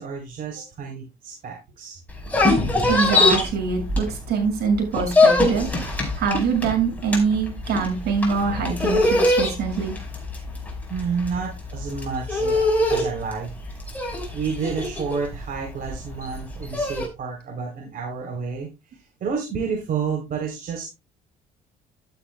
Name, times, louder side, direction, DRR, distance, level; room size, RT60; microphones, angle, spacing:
voice 1, 0.0-2.0 10.9-13.5 14.3-20.9, right 5 dB, 55° right, 1 dB, 3.8 m, -30 dB
sound 1, 2.1-4.4 4.7-17.1, left 2 dB, 10° left, 5.2 m, -22 dB
voice 2, 2.8-5.7 6.2-10.0, right 5 dB, 75° right, 3 dB, 7.2 m, -24 dB
12.5 x 12.0 x 2.3 m, 0.25 s
cardioid pair, 110°, 17 cm